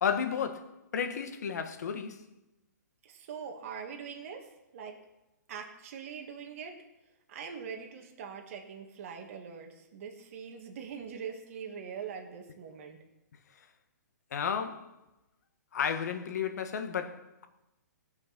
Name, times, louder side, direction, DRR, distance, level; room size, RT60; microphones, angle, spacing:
voice 1, 0.0-2.3 14.3-14.9 15.7-17.4, left 7 dB, 60° left, 1.5 m, -33 dB
voice 2, 3.0-5.0 5.5-6.8 7.3-13.0, right 6 dB, 45° right, 2.0 m, -43 dB
18.0 x 6.5 x 6.0 m
hypercardioid pair, 155°, 10 cm